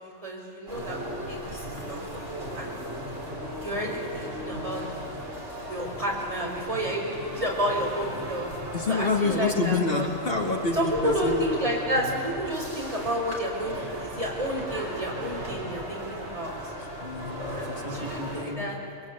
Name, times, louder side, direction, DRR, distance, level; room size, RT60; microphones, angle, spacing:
voice 1, 0.0-2.8 3.6-4.8 5.7-8.5 8.9-10.1 10.7-16.7 17.5-18.8, equal, 25° right, -2 dB, 5.6 m, -31 dB
sound 1, 0.7-18.4, equal, 60° right, 5.0 m, -37 dB
voice 2, 8.7-11.6 16.8-18.8, left 3 dB, 45° left, 2 dB, 2.2 m, -28 dB
27.0 x 21.5 x 8.5 m, 2.4 s
omnidirectional pair, 1.4 m